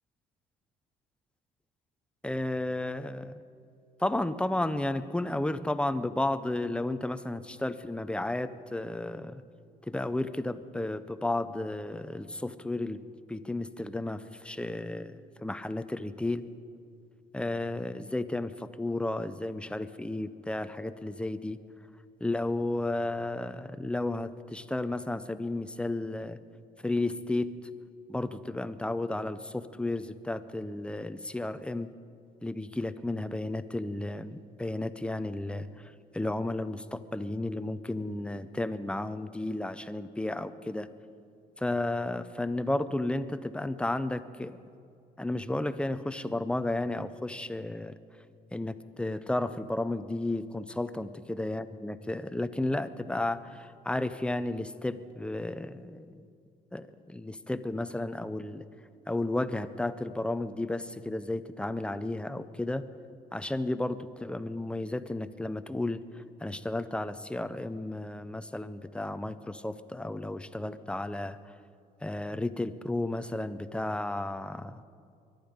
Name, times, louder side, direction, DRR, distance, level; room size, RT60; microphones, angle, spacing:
voice 1, 2.2-3.4 4.0-9.4 9.9-13.0 13.3-15.1 15.4-16.5 17.3-21.6 22.2-26.4 26.8-27.5 28.1-31.9 32.4-40.9 41.6-44.6 45.2-48.0 48.5-56.3 56.7-58.6 59.1-62.9 63.3-66.0 66.4-71.4 72.0-74.8, left 2 dB, 5° left, 13 dB, 0.5 m, -33 dB
21.5 x 12.0 x 5.2 m, 2.3 s
cardioid pair, 110°, 17 cm